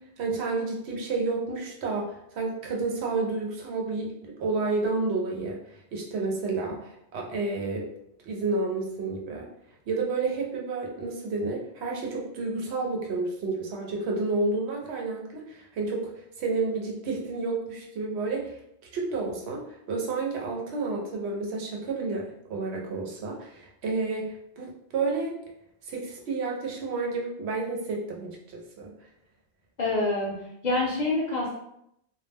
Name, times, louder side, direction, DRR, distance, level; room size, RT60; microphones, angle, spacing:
voice 1, 0.2-7.9 8.3-9.5 9.9-16.1 16.4-18.6 18.9-25.3 25.8-28.9, right 3 dB, 85° right, -1 dB, 0.9 m, -30 dB
voice 2, 29.8-30.3 30.6-31.6, left 2 dB, 50° left, -3 dB, 0.7 m, -26 dB
2.3 x 2.0 x 3.2 m, 0.77 s
omnidirectional pair, 1.1 m